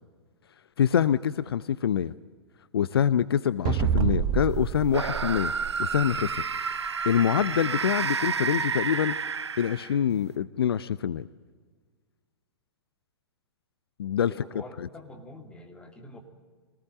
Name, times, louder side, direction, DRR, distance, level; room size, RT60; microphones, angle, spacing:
voice 1, 0.8-2.1 2.7-6.4 7.0-9.1 9.6-11.3 14.0-14.3, left 9 dB, 60° left, 17 dB, 0.6 m, -25 dB
sound 1, 3.7-6.4, right 8 dB, 30° right, 0.9 m, -28 dB
sound 2, 4.9-10.1, right 5 dB, 75° right, 0.7 m, -30 dB
voice 2, 14.2-16.2, left 2 dB, 5° left, 3 dB, 2.9 m, -46 dB
24.5 x 19.0 x 9.0 m, 1.6 s
figure-of-eight pair, 110°, 14 cm